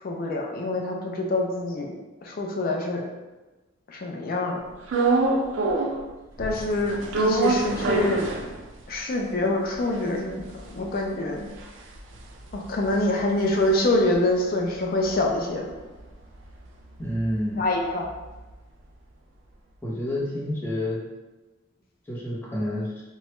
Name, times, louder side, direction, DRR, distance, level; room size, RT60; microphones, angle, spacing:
voice 1, 0.0-1.9 2.2-3.0 3.9-4.6 6.4-8.2 8.9-10.5 10.8-11.5 12.5-15.7 17.6-18.1, left 2 dB, 45° left, 0 dB, 0.4 m, -25 dB
sound 1, 4.9-6.1 6.4-9.0 9.4-9.5 9.6-14.1 14.5-18.5, right 3 dB, 65° right, 0.4 m, -28 dB
voice 2, 17.0-17.6 19.8-21.0 22.1-22.9, left 1 dB, 10° left, -7 dB, 0.7 m, -28 dB
3.0 x 2.2 x 3.0 m, 1.1 s
head